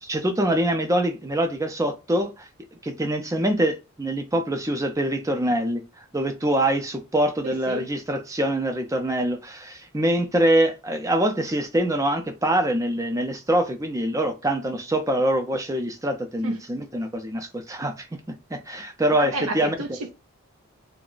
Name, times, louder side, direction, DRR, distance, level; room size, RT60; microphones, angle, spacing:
voice 1, 0.0-2.5 2.8-5.8 6.1-18.1 18.5-19.7, right 1 dB, 15° right, 0.4 m, -24 dB
voice 2, 7.4-7.9 16.4-16.6 19.2-20.1, right 1 dB, 85° right, 0.7 m, -31 dB
2.4 x 2.1 x 3.7 m
head